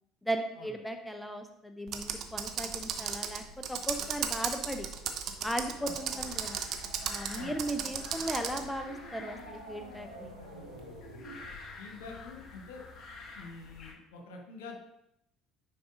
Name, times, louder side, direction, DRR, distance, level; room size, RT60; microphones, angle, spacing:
voice 1, 0.2-3.4 3.7-4.9 5.4-6.6 7.0-10.4, right 1 dB, 5° left, 6 dB, 0.6 m, -37 dB
Computer keyboard, 1.9-8.7, right 7 dB, 50° right, 0.7 m, -35 dB
sound 1, 5.0-11.5, right 2 dB, 90° right, 0.7 m, -50 dB
sound 2, 6.2-13.9, left 4 dB, 40° left, 1.4 m, -49 dB
voice 2, 11.8-12.8 13.3-14.8, left 3 dB, 65° left, 1 dB, 1.3 m, -46 dB
9.4 x 4.7 x 2.6 m, 0.81 s
figure-of-eight pair, 60°, 0 cm